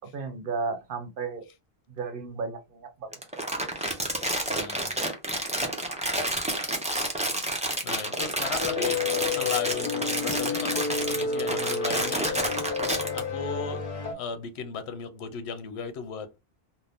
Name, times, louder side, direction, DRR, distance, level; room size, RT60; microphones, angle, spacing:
voice 1, 0.0-1.5 1.9-3.2, right 4 dB, 60° right, 0.8 m, -34 dB
Crumpling crinkling, 3.1-13.2, right 1 dB, 10° right, 0.4 m, -29 dB
voice 2, 4.2-5.0 7.8-12.4 13.1-13.9 14.1-16.4, left 6 dB, 80° left, 0.8 m, -36 dB
sound 1, 8.6-14.1, left 5 dB, 50° left, 1.0 m, -30 dB
2.6 x 2.1 x 3.3 m
omnidirectional pair, 1.1 m